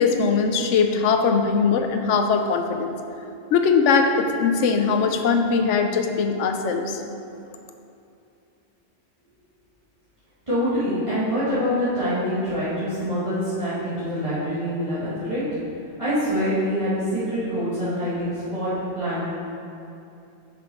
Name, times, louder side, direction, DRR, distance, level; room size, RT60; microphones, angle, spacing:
voice 1, 0.0-2.9 3.5-6.9, left 5 dB, 85° left, 5 dB, 0.9 m, -20 dB
voice 2, 10.5-15.4 16.0-19.3, equal, 25° right, -15 dB, 1.9 m, -25 dB
5.9 x 5.7 x 4.7 m, 2.7 s
omnidirectional pair, 1.2 m